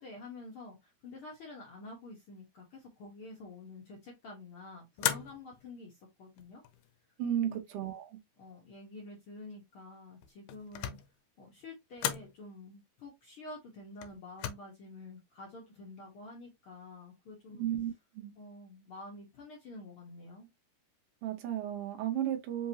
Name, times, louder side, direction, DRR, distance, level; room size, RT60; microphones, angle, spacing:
voice 1, 0.0-6.6 7.4-7.6 8.4-11.0 11.4-17.6 18.4-20.5, left 2 dB, 65° left, 1.4 m, -48 dB
sound 1, 5.0-5.7 6.4-7.0 10.2-11.2 12.0-12.4 14.0-14.5, left 11 dB, 80° left, 2.1 m, -36 dB
voice 2, 7.2-8.2 17.6-18.3 21.2-22.7, right 10 dB, 75° right, 1.4 m, -34 dB
5.2 x 2.8 x 2.7 m
omnidirectional pair, 3.9 m